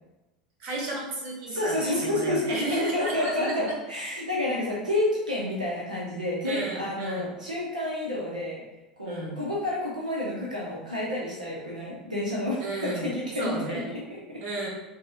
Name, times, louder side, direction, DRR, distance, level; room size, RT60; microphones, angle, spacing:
voice 1, 0.6-1.8 2.0-3.7 6.4-7.3 9.0-9.4 12.6-13.1 13.4-13.9 14.4-14.7, right 2 dB, 45° right, -1 dB, 1.2 m, -33 dB
voice 2, 1.5-8.6 9.0-14.4, left 1 dB, 80° right, -5 dB, 0.8 m, -29 dB
6.1 x 2.9 x 2.4 m, 1.0 s
figure-of-eight pair, 80°, 4 cm